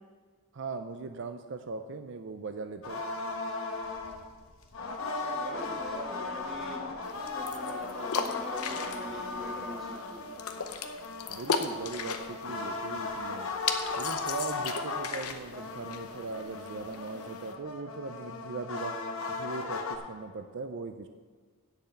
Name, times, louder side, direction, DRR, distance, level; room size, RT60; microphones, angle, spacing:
voice 1, 0.5-3.0 11.3-13.6 14.0-19.0 19.3-21.1, right 4 dB, 55° right, 8 dB, 0.5 m, -40 dB
sound 1, 2.8-20.0, left 3 dB, 65° left, 1.1 m, -37 dB
voice 2, 5.0-6.9 7.3-10.2, equal, ahead, -5 dB, 2.5 m, -43 dB
sound 2, 7.0-17.5, left 5 dB, 85° left, 0.8 m, -37 dB
8.0 x 7.1 x 8.3 m, 1.5 s
head